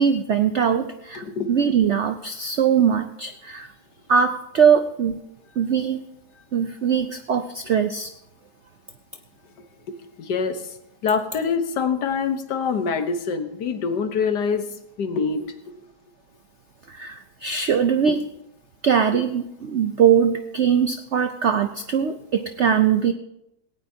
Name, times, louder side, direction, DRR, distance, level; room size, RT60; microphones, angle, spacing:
voice 1, 0.0-3.7 4.1-5.2 5.6-6.0 6.5-8.1 16.9-18.2 18.8-23.1, right 7 dB, 65° right, 8 dB, 0.7 m, -21 dB
voice 2, 1.1-1.5 9.9-10.8 11.0-14.6 15.0-15.5, left 5 dB, 70° left, 8 dB, 1.7 m, -25 dB
18.0 x 17.5 x 2.8 m, 0.81 s
omnidirectional pair, 1.9 m